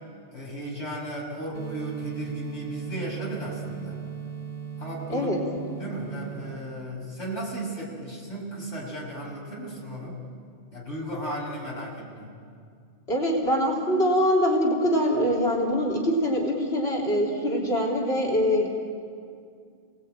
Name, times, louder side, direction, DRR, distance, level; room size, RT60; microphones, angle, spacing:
voice 1, 0.3-4.0 4.8-5.3 5.8-10.2 10.7-12.3, right 1 dB, 85° left, -3 dB, 6.5 m, -35 dB
sound 1, 1.5-6.5, right 7 dB, 40° left, 3.6 m, -37 dB
voice 2, 5.1-5.4 13.1-18.7, equal, 65° left, -3 dB, 3.8 m, -23 dB
28.0 x 19.0 x 9.0 m, 2.3 s
omnidirectional pair, 1.2 m